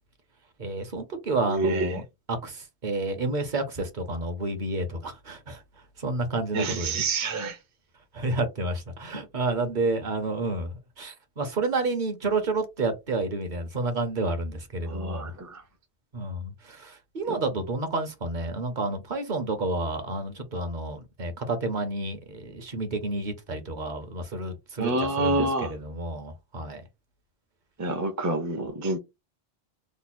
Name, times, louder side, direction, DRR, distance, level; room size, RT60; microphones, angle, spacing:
voice 1, 0.6-2.0 2.3-5.6 6.0-7.0 8.1-15.3 16.1-26.8, right 2 dB, 50° right, 0.8 m, -30 dB
voice 2, 1.5-1.9 6.5-7.6 14.9-15.6 17.3-17.4 24.8-25.7 27.8-29.0, right 2 dB, 25° right, 0.4 m, -27 dB
3.1 x 2.0 x 4.1 m
omnidirectional pair, 1.1 m